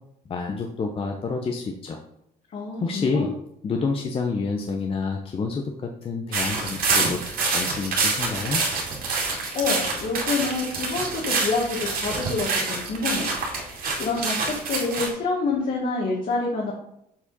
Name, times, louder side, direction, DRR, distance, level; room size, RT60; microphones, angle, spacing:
voice 1, 0.3-2.0 2.8-3.3 3.6-8.6, left 4 dB, 35° left, 2 dB, 0.8 m, -28 dB
voice 2, 2.5-3.3 9.5-13.3 13.6-16.7, left 4 dB, 55° left, -3 dB, 1.7 m, -27 dB
sound 1, 6.3-15.1, right 3 dB, 60° right, 2.3 m, -26 dB
7.3 x 4.7 x 4.1 m, 0.76 s
cardioid pair, 110°, 17 cm